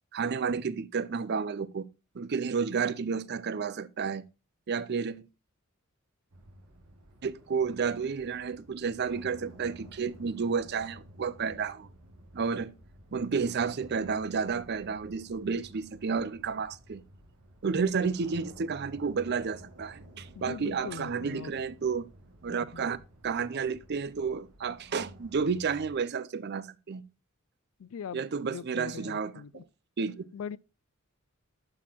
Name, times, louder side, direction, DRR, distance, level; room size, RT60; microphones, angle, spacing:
voice 1, 0.1-1.9 2.1-4.2 4.7-5.3 7.2-11.9 12.3-12.7 13.1-17.0 17.6-22.1 22.4-23.0 23.2-27.0 28.1-29.6 30.0-30.3, right 5 dB, 50° right, 0.5 m, -31 dB
sound 1, 6.3-25.9, right 1 dB, 90° right, 1.8 m, -53 dB
voice 2, 20.4-21.5 22.5-22.9 27.8-29.6 30.3-30.6, left 7 dB, 65° left, 0.3 m, -41 dB
11.5 x 4.3 x 4.4 m
head